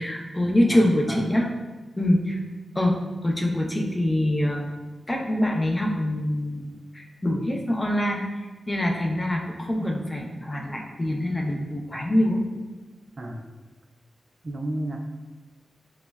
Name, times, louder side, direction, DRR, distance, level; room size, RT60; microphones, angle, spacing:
voice 1, 0.0-1.5 2.0-2.4 2.8-4.7 5.1-8.2 8.7-12.5, left 1 dB, 20° left, 0 dB, 0.5 m, -24 dB
voice 2, 13.2-13.6 14.4-15.0, right 1 dB, 40° right, 1 dB, 0.3 m, -32 dB
5.1 x 2.1 x 2.3 m, 1.2 s
cardioid pair, 80°, 0 cm